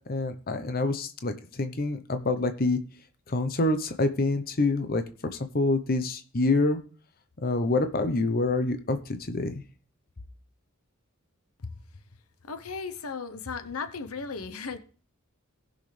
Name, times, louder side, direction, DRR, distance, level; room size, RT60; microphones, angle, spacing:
voice 1, 0.1-2.8 3.3-5.0 5.3-6.8 7.4-9.6, left 2 dB, 45° left, 0.9 m, -26 dB
voice 2, 12.4-14.8, left 5 dB, 85° left, 1.0 m, -36 dB
18.5 x 6.4 x 3.4 m
head